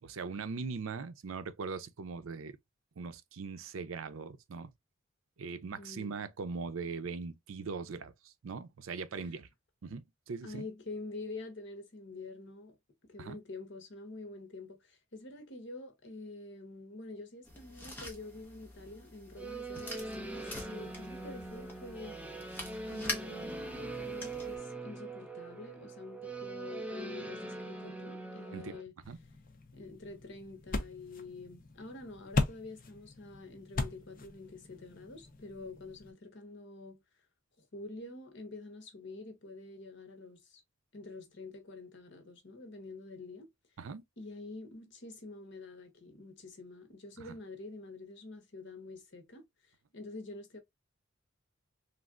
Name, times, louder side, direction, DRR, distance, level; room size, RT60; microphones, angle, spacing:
voice 1, 0.0-2.6 3.0-4.7 5.4-9.5 9.8-10.6 13.2-13.4 28.5-28.8 29.1-29.2 43.8-44.0 47.2-47.3, right 4 dB, 85° right, 0.5 m, -40 dB
voice 2, 5.8-6.1 9.2-9.3 10.4-12.8 13.0-22.2 22.9-28.9 29.7-37.0 37.6-40.6 40.9-43.5 44.2-49.4 49.9-50.6, left 3 dB, 60° left, 1.0 m, -47 dB
sound 1, 17.4-24.6, left 1 dB, 10° left, 0.9 m, -45 dB
sound 2, 19.4-28.8, right 2 dB, 5° right, 0.5 m, -42 dB
sound 3, 29.0-36.1, left 3 dB, 45° left, 0.6 m, -39 dB
3.3 x 2.5 x 2.4 m
head